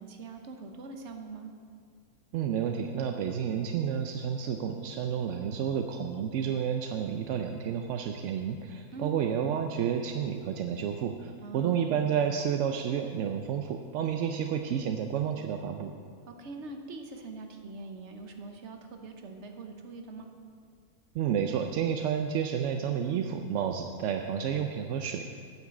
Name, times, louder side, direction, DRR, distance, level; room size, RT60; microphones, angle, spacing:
voice 1, 0.0-1.5 8.9-9.2 11.4-11.8 16.3-20.3, right 3 dB, 50° right, 5 dB, 1.1 m, -43 dB
voice 2, 2.3-15.9 21.1-25.3, right 8 dB, 65° right, 5 dB, 0.8 m, -30 dB
9.3 x 6.0 x 7.6 m, 2.1 s
omnidirectional pair, 1.6 m